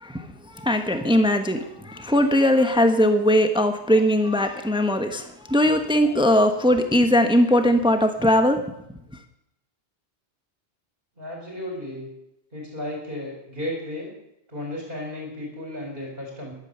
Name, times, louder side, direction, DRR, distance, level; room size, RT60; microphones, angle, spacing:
voice 1, 0.0-8.6, equal, 5° right, 7 dB, 1.1 m, -20 dB
voice 2, 11.2-12.1 12.5-14.1 14.5-16.5, left 1 dB, 50° right, -2 dB, 4.6 m, -34 dB
14.5 x 11.5 x 6.8 m, 0.82 s
omnidirectional pair, 1.2 m